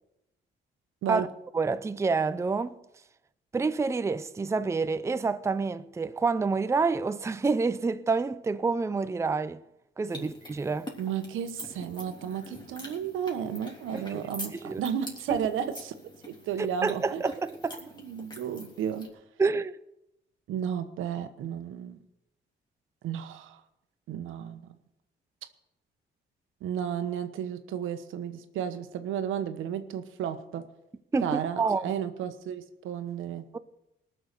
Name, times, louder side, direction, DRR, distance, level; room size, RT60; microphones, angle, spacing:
voice 1, 1.5-2.7 3.5-9.6 10.0-10.9 13.9-14.2 14.5-14.8 15.3-15.4 16.6-17.8 19.4-19.8 31.1-31.9 33.5-33.6, right 4 dB, 15° right, 0.5 m, -28 dB
sound 1, 10.1-19.1, left 1 dB, 20° left, 3.4 m, -45 dB
voice 2, 11.0-15.9 16.3-17.2 17.9-19.1 20.5-22.0 23.0-23.6 24.1-24.7 26.6-30.6 31.2-33.4, right 8 dB, 85° right, 1.2 m, -33 dB
19.5 x 6.8 x 6.7 m
cardioid pair, 90°, 20 cm